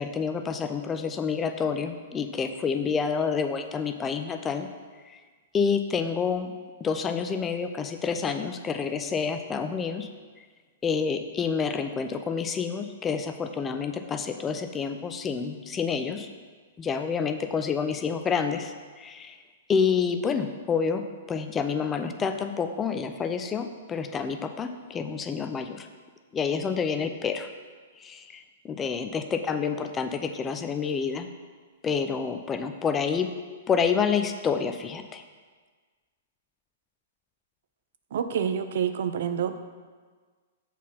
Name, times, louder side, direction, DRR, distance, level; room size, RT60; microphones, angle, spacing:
voice 1, 0.0-4.7 5.1-5.2 5.5-6.5 6.8-10.1 10.8-16.3 16.8-19.4 19.7-21.0 21.3-25.9 26.3-27.5 28.0-31.3 31.8-33.3 33.7-35.2, left 6 dB, 20° left, 8 dB, 0.5 m, -28 dB
voice 2, 38.1-39.6, right 8 dB, 65° right, 9 dB, 0.5 m, -27 dB
7.3 x 4.2 x 5.6 m, 1.5 s
hypercardioid pair, 120°, 0 cm